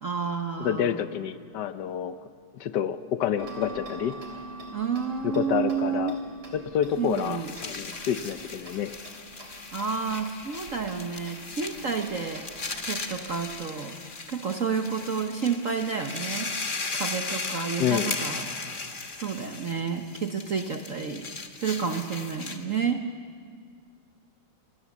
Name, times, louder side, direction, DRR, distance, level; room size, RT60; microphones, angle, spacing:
voice 1, 0.0-1.0 4.7-6.2 7.0-7.5 9.7-12.5 12.9-14.0 14.3-16.5 16.9-18.7 19.2-21.3 21.6-23.0, right 6 dB, 50° right, 5 dB, 1.1 m, -30 dB
voice 2, 0.6-2.2 2.5-4.2 5.2-6.2 6.5-8.9 17.8-18.1, left 9 dB, 65° left, 12 dB, 1.2 m, -28 dB
Tick-tock, 3.4-13.6, right 1 dB, 75° right, 4.9 m, -45 dB
sound 1, 7.0-22.8, left 4 dB, 30° left, 1.1 m, -37 dB
28.0 x 20.5 x 7.2 m, 2.1 s
omnidirectional pair, 2.4 m